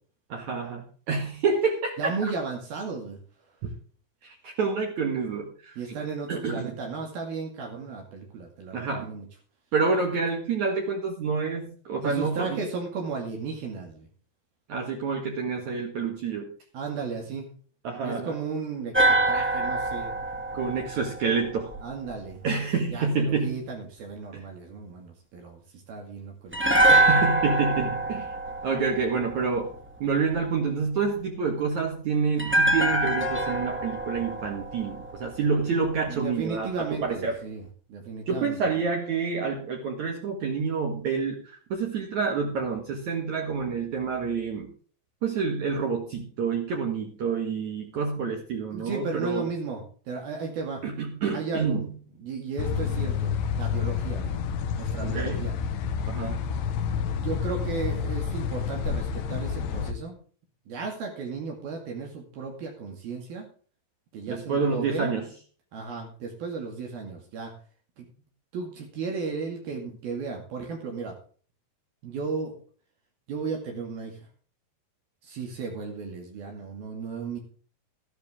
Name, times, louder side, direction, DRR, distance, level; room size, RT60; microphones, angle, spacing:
voice 1, 0.3-2.1 4.2-6.0 6.3-6.8 8.7-9.1 9.7-12.6 14.7-16.5 17.8-18.3 20.5-21.7 22.4-23.7 24.3-24.5 26.9-28.3 28.6-29.7 30.0-37.4 38.3-44.7 45.2-49.5 50.8-51.9 55.0-55.5 56.0-56.4 64.3-65.3, right 5 dB, 55° right, 1 dB, 2.9 m, -28 dB
voice 2, 2.0-3.2 5.8-9.3 12.0-14.1 16.7-17.5 18.0-20.2 21.8-22.4 22.9-25.6 25.9-26.8 27.7-27.9 36.1-38.6 48.7-50.8 51.3-51.8 52.2-54.4 54.8-55.6 57.2-60.2 60.7-63.5 64.1-65.1 65.7-67.5 68.0-68.1 68.5-71.2 72.0-72.6 73.3-74.2 75.2-77.4, right 4 dB, 70° right, 1 dB, 4.1 m, -34 dB
sound 1, 18.9-22.1 26.5-29.7 32.4-35.6 35.9-36.0, right 1 dB, 5° right, 0.8 m, -25 dB
sound 2, 52.6-59.9, left 7 dB, 70° left, 2.8 m, -29 dB
13.5 x 12.5 x 3.6 m, 0.43 s
omnidirectional pair, 4.5 m